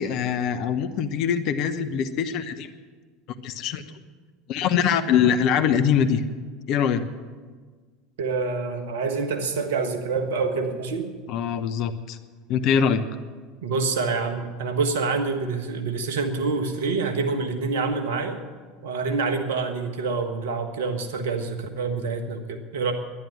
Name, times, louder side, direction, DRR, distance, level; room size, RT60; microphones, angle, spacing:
voice 1, 0.0-2.7 3.4-3.8 4.5-6.2 6.7-7.0 11.3-12.2 12.5-13.0, left 7 dB, 55° left, 10 dB, 1.0 m, -23 dB
voice 2, 8.2-11.1 13.6-18.4 18.8-22.9, right 4 dB, 70° right, 6 dB, 1.5 m, -26 dB
11.5 x 10.5 x 9.6 m, 1.5 s
figure-of-eight pair, 75°, 0 cm